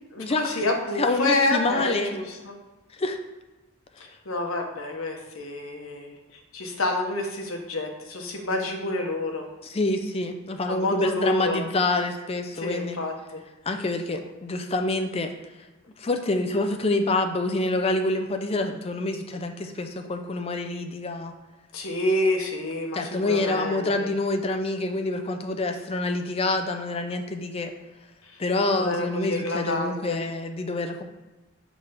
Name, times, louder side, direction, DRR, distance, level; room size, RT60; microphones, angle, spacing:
voice 1, 0.1-2.5 4.3-6.1 6.5-9.4 10.7-11.6 12.6-13.4 21.7-24.1 28.8-30.2, left 2 dB, 85° left, 2 dB, 1.1 m, -28 dB
voice 2, 1.0-2.2 3.0-3.2 9.6-13.0 13.7-15.3 16.0-21.3 22.9-27.7 28.4-31.0, left 2 dB, 30° left, 5 dB, 0.5 m, -27 dB
6.1 x 3.4 x 5.5 m, 1.1 s
head